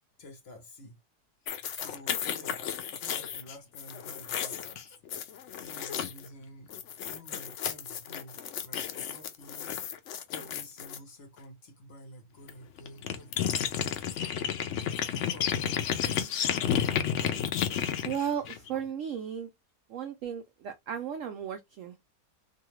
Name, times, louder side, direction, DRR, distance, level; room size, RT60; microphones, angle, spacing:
voice 1, 0.2-1.0 1.4-4.8 5.6-6.8 7.0-9.7 10.3-14.0 15.1-15.9, equal, 45° left, 1.0 m, -50 dB
sound 1, 1.5-6.3 6.7-11.0 12.5-12.6 12.8-18.8, left 9 dB, 70° left, 0.7 m, -32 dB
voice 2, 18.0-19.5 19.9-22.0, right 8 dB, 70° right, 0.7 m, -35 dB
2.8 x 2.3 x 3.0 m
omnidirectional pair, 1.7 m